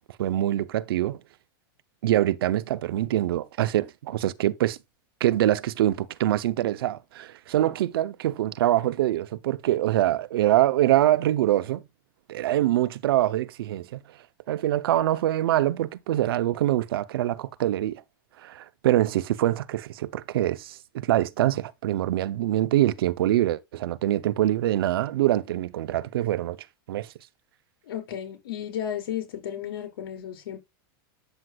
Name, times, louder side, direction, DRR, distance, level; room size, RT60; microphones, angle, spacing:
voice 1, 0.2-1.2 2.0-4.8 5.2-11.8 12.3-14.0 14.5-18.0 18.4-26.6 26.9-27.1, right 13 dB, 80° right, 0.7 m, -24 dB
voice 2, 27.9-30.6, left 10 dB, 80° left, 4.6 m, -33 dB
8.9 x 7.9 x 2.4 m
supercardioid pair, 155°, 12 cm